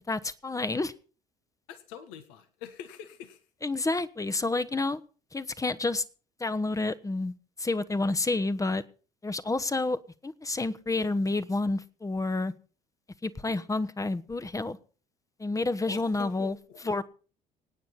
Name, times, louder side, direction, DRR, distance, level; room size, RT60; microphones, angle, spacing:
voice 1, 0.1-0.9 3.6-5.0 5.3-6.0 6.4-8.8 9.2-12.5 13.2-14.8 15.4-16.5 16.8-17.0, left 2 dB, 15° left, 13 dB, 1.2 m, -29 dB
voice 2, 1.7-3.4 15.9-16.9, left 9 dB, 65° left, 9 dB, 1.6 m, -44 dB
25.5 x 9.4 x 4.2 m, 0.39 s
figure-of-eight pair, 55°, 20 cm